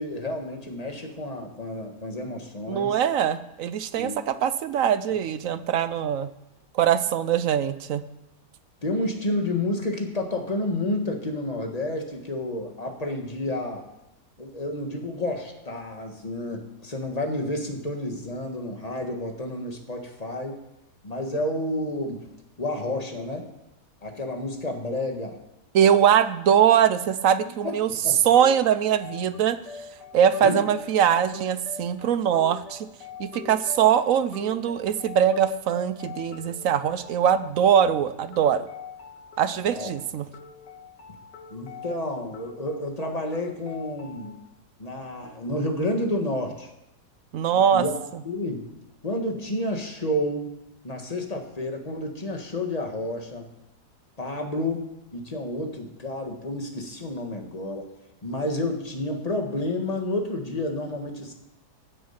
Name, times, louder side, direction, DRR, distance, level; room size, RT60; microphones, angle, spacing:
voice 1, 0.0-3.0 4.0-4.1 8.8-13.9 14.4-20.6 21.0-22.2 22.6-23.5 24.0-25.4 27.6-27.8 28.0-28.2 30.4-30.6 39.6-39.9 41.5-44.4 44.8-46.7 47.7-48.0 48.2-48.7 49.0-50.5 50.8-53.5 54.2-57.8 58.2-61.3, left 1 dB, 25° left, 3 dB, 1.7 m, -30 dB
voice 2, 2.7-6.3 6.7-8.0 25.7-27.9 28.2-29.6 30.1-32.9 33.2-38.6 39.4-40.3 47.3-47.8, right 9 dB, 65° right, 13 dB, 0.9 m, -22 dB
sound 1, 28.3-44.3, left 7 dB, 85° left, 2.8 m, -44 dB
16.5 x 7.6 x 5.8 m, 0.89 s
omnidirectional pair, 1.8 m